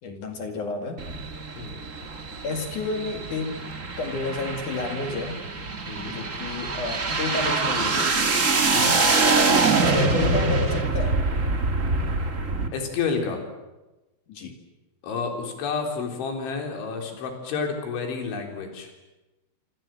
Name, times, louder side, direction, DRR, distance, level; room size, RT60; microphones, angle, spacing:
voice 1, 0.0-1.0 2.4-3.7 4.0-5.4 6.1-8.4 9.1-11.2 14.3-14.5, left 3 dB, 50° left, 6 dB, 3.1 m, -31 dB
sound 1, 1.0-12.7, right 3 dB, 70° right, 0.7 m, -24 dB
voice 2, 5.9-6.2 8.7-9.0 12.7-13.4 15.0-18.9, left 5 dB, 90° left, 4 dB, 6.2 m, -30 dB
27.0 x 26.5 x 7.7 m, 1.0 s
omnidirectional pair, 5.2 m